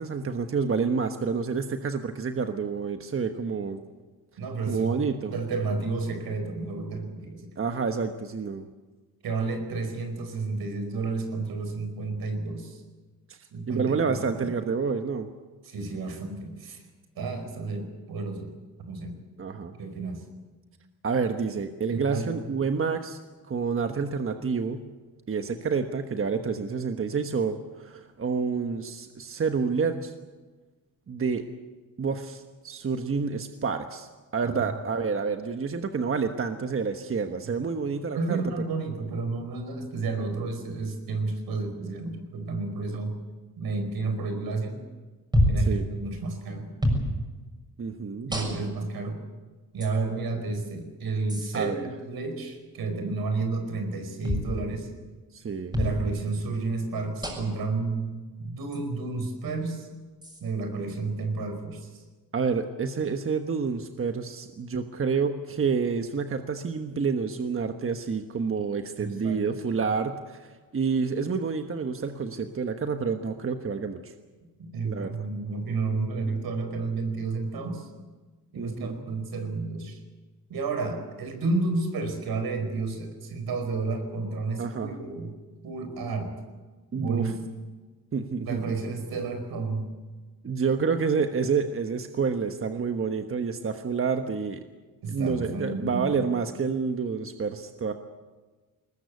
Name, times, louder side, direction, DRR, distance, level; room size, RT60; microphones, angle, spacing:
voice 1, 0.0-3.8 4.7-5.3 7.6-8.7 13.3-13.4 13.7-15.3 19.4-19.7 21.0-23.2 23.5-24.8 25.3-30.1 31.1-31.4 32.0-38.4 45.6-45.9 47.8-48.3 51.5-51.9 55.3-55.7 62.3-74.1 74.8-75.1 78.6-79.0 84.6-84.9 86.9-87.3 88.1-88.8 90.4-94.6 95.1-97.9, right 5 dB, 35° right, 6 dB, 1.3 m, -28 dB
voice 2, 4.4-5.0 5.3-7.5 9.2-12.8 13.5-14.5 15.6-16.8 17.2-18.5 18.8-19.2 19.8-20.2 21.9-22.4 37.4-37.6 38.1-43.2 43.6-44.8 45.5-46.7 48.2-49.2 49.7-54.9 55.7-59.9 60.4-62.0 69.0-69.5 74.6-77.9 78.5-80.0 80.5-85.3 85.6-86.3 86.9-87.3 88.5-89.9 95.0-96.3, right 3 dB, 75° right, 6 dB, 4.9 m, -31 dB
sound 1, 45.3-45.7 46.8-47.1 48.3-48.8 49.8-49.9 51.3-51.5 54.2-54.5 55.7-56.0 57.2-57.6 58.7-58.8 60.2-60.4, equal, 10° right, 6.4 m, -26 dB
21.0 x 20.5 x 8.4 m, 1.3 s
cardioid pair, 115°, 36 cm